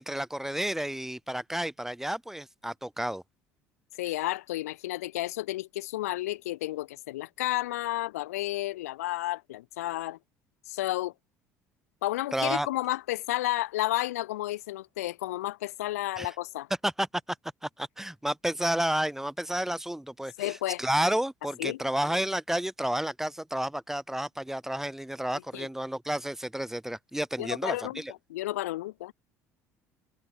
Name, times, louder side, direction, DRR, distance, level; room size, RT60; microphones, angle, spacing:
voice 1, 0.0-3.2 12.3-12.7 16.2-16.3 16.8-17.4 17.6-28.1, right 1 dB, 5° right, 4.5 m, -31 dB
voice 2, 4.0-10.2 10.7-11.1 12.0-16.7 20.4-20.8 21.6-21.8 25.5-25.7 27.4-28.0 28.3-29.1, left 16 dB, 80° left, 2.5 m, -32 dB
hypercardioid pair, 60°, 8 cm